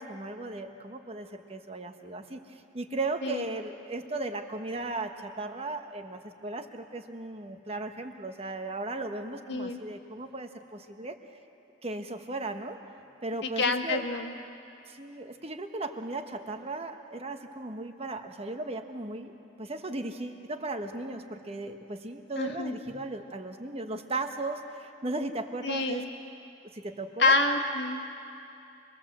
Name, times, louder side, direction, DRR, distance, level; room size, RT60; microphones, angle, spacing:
voice 1, 0.0-2.4 2.7-11.2 11.8-12.8 13.2-14.0 14.9-26.0 26.7-27.3, right 2 dB, 30° right, 6 dB, 1.2 m, -36 dB
voice 2, 9.5-9.8 13.6-14.3 22.4-22.8 25.6-26.1 27.2-28.2, left 3 dB, 60° left, 4 dB, 1.7 m, -27 dB
26.0 x 21.0 x 7.5 m, 2.7 s
head